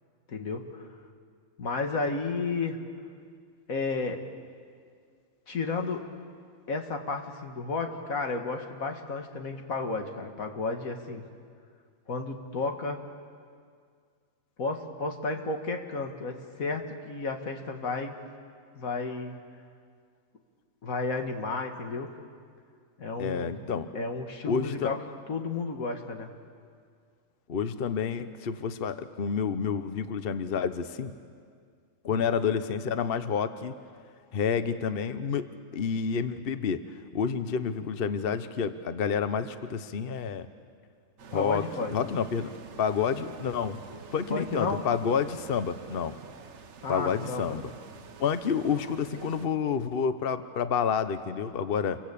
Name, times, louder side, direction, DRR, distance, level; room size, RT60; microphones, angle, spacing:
voice 1, 0.3-0.9 1.6-2.8 3.7-4.2 5.5-6.1 6.7-11.2 12.1-13.0 14.6-18.2 18.7-19.4 20.8-22.1 23.0-23.5 23.9-25.0 25.3-26.3 41.3-41.9 44.3-44.8 46.8-47.6, left 3 dB, 90° left, 4 dB, 2.3 m, -32 dB
voice 2, 23.2-23.9 24.5-24.9 27.5-31.1 32.0-33.7 34.3-35.5 35.7-36.8 37.1-40.5 41.3-41.6 41.9-43.8 44.1-46.1 46.9-47.7 48.2-52.0, left 6 dB, 50° left, 11 dB, 1.0 m, -29 dB
sound 1, 41.2-49.5, right 5 dB, 60° right, 1.2 m, -48 dB
29.0 x 23.0 x 8.5 m, 2.1 s
omnidirectional pair, 1.4 m